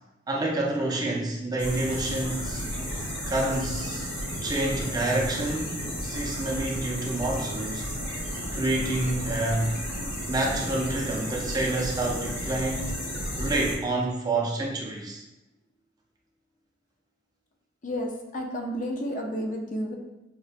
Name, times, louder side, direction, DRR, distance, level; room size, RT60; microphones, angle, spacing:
voice 1, 0.3-2.6 3.3-4.1 4.4-7.9 8.5-9.8 10.3-13.0 13.3-15.2, right 2 dB, 20° right, -1 dB, 0.4 m, -28 dB
sound 1, 1.6-13.8, equal, 85° left, 1.1 m, -33 dB
voice 2, 17.8-20.0, equal, 40° left, 1 dB, 0.5 m, -31 dB
5.1 x 2.1 x 2.4 m, 0.96 s
head